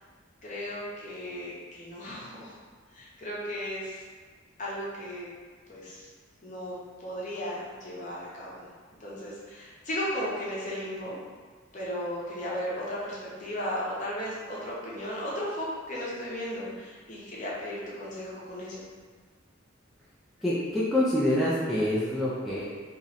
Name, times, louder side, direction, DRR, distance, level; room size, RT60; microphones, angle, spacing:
voice 1, 0.4-2.6 2.9-4.0 4.6-5.3 5.7-6.1 6.4-8.7 9.0-11.2 11.7-18.9, equal, 40° left, -6 dB, 0.8 m, -35 dB
voice 2, 20.4-22.7, left 1 dB, ahead, -9 dB, 0.4 m, -26 dB
3.0 x 2.6 x 4.0 m, 1.5 s
head